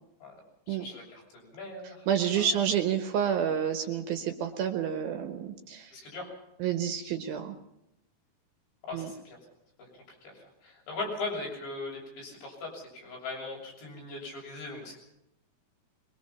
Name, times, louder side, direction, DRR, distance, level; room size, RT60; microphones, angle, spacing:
voice 1, 0.7-2.1 2.3-2.7 5.9-6.3 8.9-9.4 9.8-9.9 10.2-15.0, left 3 dB, 90° left, -1 dB, 9.4 m, -39 dB
voice 2, 2.1-5.9 6.6-7.5 8.9-9.1, right 8 dB, 70° right, 6 dB, 2.8 m, -29 dB
23.5 x 22.5 x 5.8 m, 0.81 s
omnidirectional pair, 4.9 m